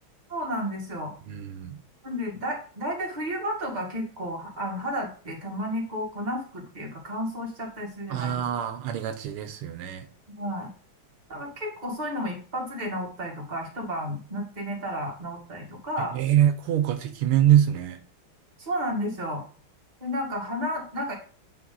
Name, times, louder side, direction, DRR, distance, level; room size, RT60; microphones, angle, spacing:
voice 1, 0.3-1.1 2.0-8.4 10.4-10.7 11.3-16.2 18.6-19.4 20.0-21.1, equal, 20° right, -1 dB, 2.0 m, -32 dB
voice 2, 1.3-1.8 8.1-10.1 16.0-18.0, right 11 dB, 85° right, 9 dB, 1.6 m, -24 dB
8.5 x 4.6 x 3.9 m, 0.41 s
omnidirectional pair, 2.4 m